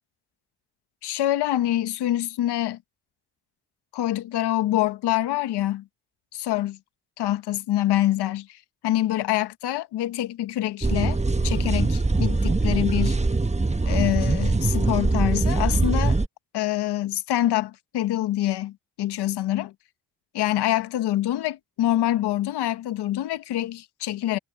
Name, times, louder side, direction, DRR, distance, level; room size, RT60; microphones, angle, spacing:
voice 1, 1.0-2.8 3.9-5.9 6.4-6.8 7.2-11.2 11.4-13.2 13.8-16.2 16.5-19.7 20.3-24.4, left 14 dB, 85° left, 1.2 m, -25 dB
sound 1, 10.8-16.3, right 3 dB, 15° right, 1.3 m, -22 dB
supercardioid pair, 50°, 39 cm